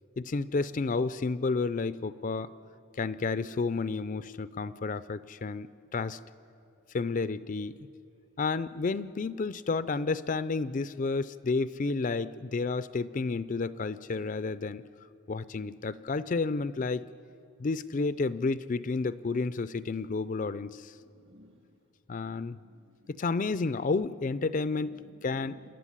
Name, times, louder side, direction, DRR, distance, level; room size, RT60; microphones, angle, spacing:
voice 1, 0.2-2.5 3.0-6.2 6.9-7.8 8.4-14.8 15.3-17.0 17.6-20.9 22.1-22.6 23.1-25.6, left 4 dB, 40° left, 15 dB, 0.4 m, -31 dB
voice 2, 20.9-21.8 22.6-23.1 24.9-25.7, left 1 dB, 55° right, 5 dB, 1.9 m, -58 dB
28.0 x 12.0 x 9.9 m, 2.6 s
head